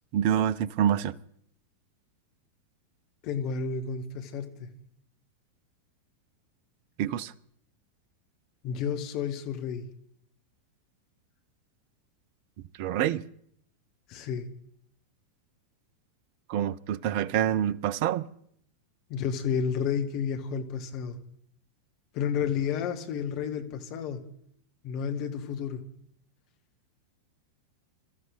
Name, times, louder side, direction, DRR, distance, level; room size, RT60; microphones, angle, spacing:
voice 1, 0.1-1.1 7.0-7.3 12.8-13.2 16.5-18.3, right 10 dB, 45° right, 0.7 m, -26 dB
voice 2, 3.2-4.7 8.6-9.9 14.1-14.5 19.1-21.2 22.1-24.2 24.8-25.8, left 7 dB, 40° left, 1.8 m, -31 dB
26.0 x 13.5 x 4.0 m
figure-of-eight pair, 90°, 0 cm